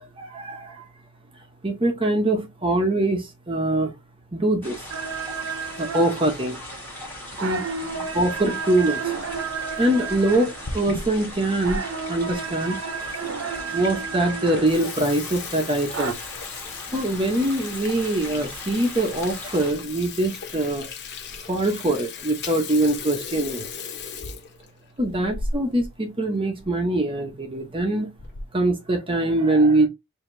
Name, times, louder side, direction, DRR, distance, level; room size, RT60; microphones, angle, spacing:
voice 1, 0.2-0.8 1.6-3.9 4.3-4.8 5.8-6.6 7.4-7.6 8.1-9.0 9.8-11.8 12.1-12.8 13.7-16.1 16.9-20.9 21.5-23.7 25.0-28.1 28.5-29.9, right 1 dB, 25° right, 0.8 m, -23 dB
sound 1, 4.6-19.7, left 1 dB, 10° left, 1.5 m, -39 dB
sound 2, 4.9-16.1, right 6 dB, 60° right, 0.6 m, -32 dB
Water tap faucet / Sink (filling or washing), 10.3-11.8 12.3-12.4 13.1-13.2 13.5-13.6 14.0-14.2 14.5-25.9 26.2-26.3 26.6-26.7 27.5-27.8 28.2-28.6, left 4 dB, 50° left, 0.8 m, -36 dB
5.0 x 2.8 x 2.6 m
head